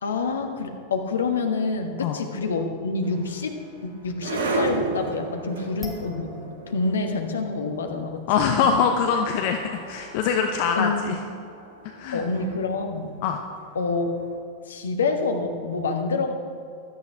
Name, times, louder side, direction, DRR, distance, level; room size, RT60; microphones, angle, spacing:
voice 1, 0.0-6.3 6.7-8.2 8.6-8.7 10.7-11.0 12.1-13.2 13.7-14.2 14.7-16.3, left 4 dB, 65° left, 4 dB, 1.4 m, -27 dB
sound 1, 3.0-14.2, right 3 dB, 60° right, 1.8 m, -35 dB
sound 2, 5.8-7.1 7.4-7.5 8.5-8.6 9.3-9.4 9.6-10.5, equal, ahead, 1.7 m, -44 dB
voice 2, 8.3-9.6 9.9-11.2 12.0-12.2 13.2-13.4, left 6 dB, 45° left, 4 dB, 0.8 m, -23 dB
16.0 x 12.5 x 3.4 m, 2.5 s
figure-of-eight pair, 90°, 0 cm